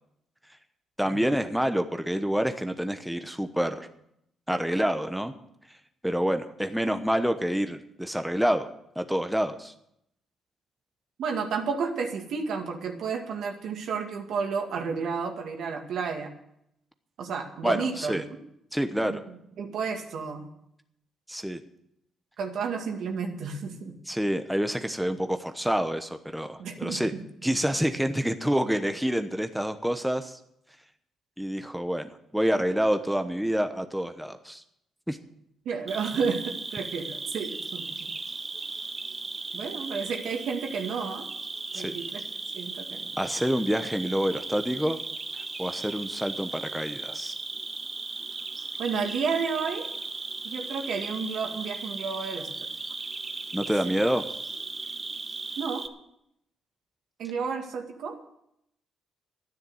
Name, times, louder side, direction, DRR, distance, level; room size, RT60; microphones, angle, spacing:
voice 1, 1.0-3.9 4.5-5.3 6.0-8.7 9.0-9.7 17.6-18.2 18.7-19.2 21.3-21.6 24.1-27.1 27.4-30.4 31.4-34.6 35.1-35.2 41.7-41.9 43.2-45.0 45.3-47.3 53.5-54.3, equal, 5° right, 7 dB, 1.0 m, -27 dB
voice 2, 11.2-16.3 17.2-18.3 19.0-20.5 22.4-24.0 26.6-27.2 35.7-38.1 39.5-41.3 41.7-42.2 42.5-43.0 48.8-49.9 50.4-52.7 55.6-55.8 57.2-58.2, right 5 dB, 70° right, 4 dB, 2.1 m, -31 dB
Cricket, 35.9-55.9, right 3 dB, 30° right, 1.1 m, -37 dB
12.0 x 10.0 x 7.9 m, 0.78 s
cardioid pair, 90°, 0 cm